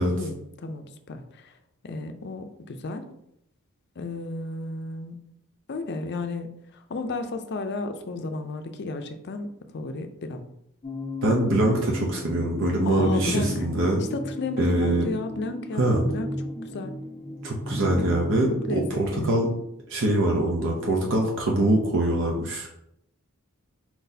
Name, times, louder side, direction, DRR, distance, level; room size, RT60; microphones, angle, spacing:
voice 1, 0.0-1.5 1.8-3.1 4.0-5.2 5.7-10.5 12.8-13.7 14.0-16.3 16.7-16.9 18.7-19.3, left 3 dB, 50° left, 7 dB, 0.5 m, -33 dB
sound 1, 10.8-19.0, left 1 dB, 25° left, 1.2 m, -35 dB
voice 2, 11.2-14.0 14.6-15.1 15.8-16.0 17.4-19.5 19.9-22.7, right 1 dB, 60° right, -1 dB, 0.7 m, -23 dB
4.6 x 4.0 x 2.7 m, 0.77 s
head